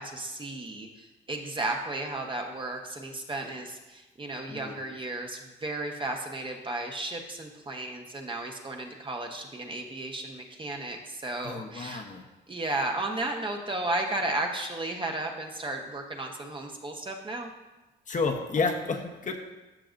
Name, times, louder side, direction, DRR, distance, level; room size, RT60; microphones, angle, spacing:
voice 1, 0.0-12.0 12.5-17.5, right 2 dB, 25° right, 2 dB, 1.1 m, -34 dB
voice 2, 4.5-4.8 11.4-12.2 18.1-19.4, left 4 dB, 40° left, 2 dB, 1.0 m, -30 dB
13.0 x 5.9 x 2.6 m, 1.1 s
cardioid pair, 90°, 20 cm